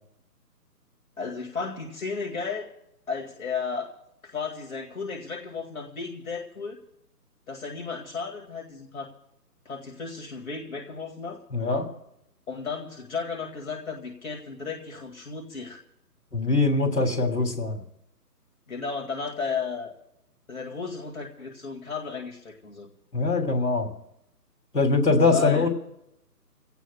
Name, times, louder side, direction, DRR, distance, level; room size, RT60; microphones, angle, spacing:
voice 1, 1.2-2.7 3.1-3.9 4.2-6.8 7.5-9.1 9.7-11.4 12.5-15.8 18.7-19.9 20.5-22.9 25.3-25.7, left 5 dB, 60° left, 1 dB, 2.1 m, -34 dB
voice 2, 11.5-11.9 16.3-17.8 23.1-23.9 24.7-25.7, left 3 dB, 80° left, 4 dB, 2.8 m, -22 dB
27.5 x 17.5 x 2.2 m, 0.81 s
figure-of-eight pair, 150°, 48 cm